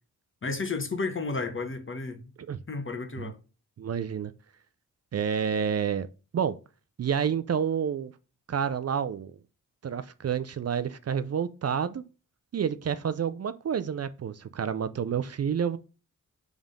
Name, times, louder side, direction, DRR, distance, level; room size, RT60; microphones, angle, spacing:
voice 1, 0.4-2.3 2.7-3.4, left 3 dB, 35° left, 1.2 m, -32 dB
voice 2, 3.8-4.3 5.1-6.1 6.3-6.6 7.0-8.1 8.5-9.3 9.8-12.0 12.5-15.8, right 7 dB, 45° right, 0.5 m, -29 dB
5.4 x 3.7 x 5.2 m
cardioid pair, 75°, 34 cm